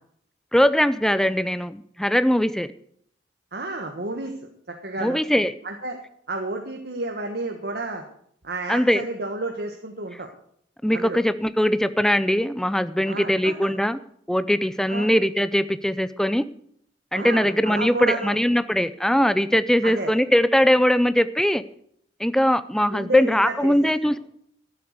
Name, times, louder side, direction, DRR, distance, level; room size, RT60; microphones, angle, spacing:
voice 1, 0.5-2.7 5.0-5.5 8.7-9.0 10.8-14.0 14.3-16.4 17.1-21.6 22.2-24.2, equal, 5° left, 14 dB, 0.4 m, -21 dB
voice 2, 3.5-5.2 5.6-6.0 6.3-8.0 8.4-10.3 10.9-11.2 13.0-13.5 14.9-15.1 17.1-18.4 19.8-20.1 22.9-23.9, right 2 dB, 55° right, 3 dB, 1.4 m, -31 dB
13.5 x 7.9 x 8.0 m, 0.67 s
head